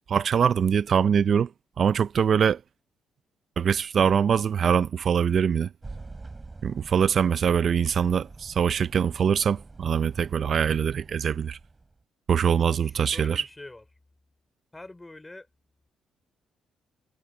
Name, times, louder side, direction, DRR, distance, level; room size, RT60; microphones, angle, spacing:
voice 1, 0.1-1.5 1.8-2.6 3.6-5.7 6.6-11.6 12.3-13.4, right 7 dB, 55° right, 0.4 m, -23 dB
sound 1, 5.8-12.0, right 3 dB, 25° right, 6.3 m, -45 dB
voice 2, 12.7-13.8 14.7-15.5, left 2 dB, 15° left, 4.6 m, -44 dB
cardioid pair, 90°, 0 cm